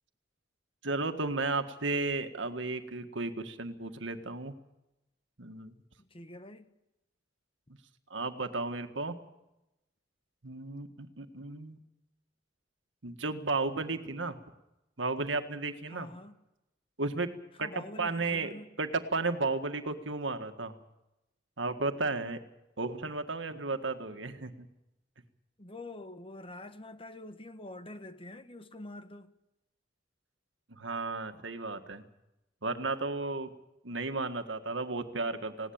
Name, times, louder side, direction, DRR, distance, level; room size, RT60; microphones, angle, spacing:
voice 1, 0.8-4.5 5.4-5.7 8.1-9.2 10.4-11.8 13.0-14.4 15.0-16.1 17.0-18.5 18.8-20.8 21.6-22.4 22.8-24.7 30.7-32.0 32.6-33.5 33.8-35.7, right 3 dB, 85° right, 1.8 m, -34 dB
voice 2, 6.0-6.7 15.9-16.4 17.6-18.7 25.6-29.3, left 1 dB, 30° left, 1.4 m, -46 dB
19.5 x 18.0 x 8.8 m
head